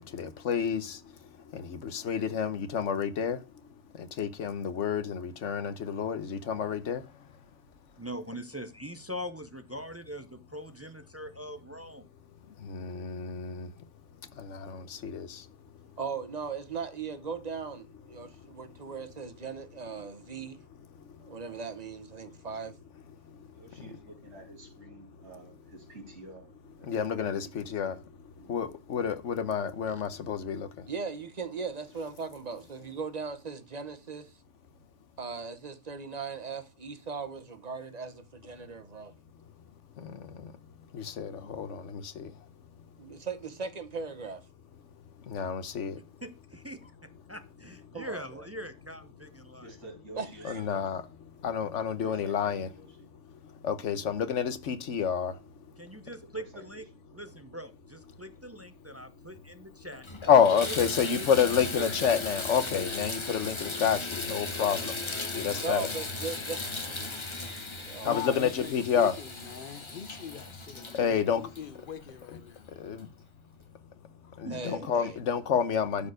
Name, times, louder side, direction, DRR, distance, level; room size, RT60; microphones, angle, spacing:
voice 1, 0.1-1.0 1.5-3.4 4.2-7.0 12.7-13.7 14.4-15.4 26.9-27.9 28.5-30.7 40.0-40.1 40.9-42.3 45.3-46.0 50.4-51.0 51.4-52.7 53.6-55.3 60.3-64.9 65.3-65.9 68.0-69.1 70.9-71.4 72.8-73.1 74.4-76.1, left 7 dB, 75° left, 1.2 m, -29 dB
voice 2, 8.0-12.1 46.2-49.8 55.8-56.8 57.1-60.1 60.5-60.8 61.0-62.0 65.1-65.6 68.0-68.2 74.4-74.9, equal, 20° right, 0.4 m, -42 dB
voice 3, 16.0-20.6 21.2-22.7 30.9-34.3 35.2-39.1 43.0-44.4 47.9-48.2 50.2-50.6 65.5-67.0 67.8-68.2 74.5-75.2, right 5 dB, 35° right, 0.9 m, -38 dB
voice 4, 23.5-26.5 26.8-28.0 28.4-28.7 49.6-50.5 50.7-51.0 52.0-53.1 56.1-57.0, right 1 dB, 70° right, 3.8 m, -50 dB
Water tap faucet / Bathtub (filling or washing), 59.4-59.5 59.9-72.3 73.0-73.1 73.6-73.7, left 3 dB, 25° left, 1.0 m, -37 dB
voice 5, 67.3-72.7 74.2-74.4, left 8 dB, 55° left, 0.7 m, -43 dB
12.0 x 4.5 x 4.9 m
omnidirectional pair, 1.3 m